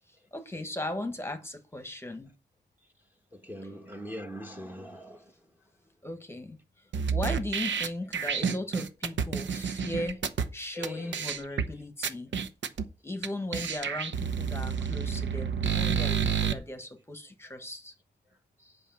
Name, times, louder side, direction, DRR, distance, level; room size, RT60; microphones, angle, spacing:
voice 1, 0.1-2.3 6.0-6.6 7.1-10.2 10.5-12.3 13.0-17.9, left 1 dB, 15° left, 1.3 m, -37 dB
voice 2, 3.3-5.3 9.5-9.6 10.7-11.3 18.6-18.8, equal, 10° right, 1.2 m, -42 dB
sound 1, 6.9-10.5 10.8-10.9 11.1-11.7 12.0-12.8 13.2-13.3 13.5-16.5, right 7 dB, 85° right, 0.9 m, -29 dB
8.4 x 5.5 x 7.0 m
wide cardioid pair, 130°, 18 cm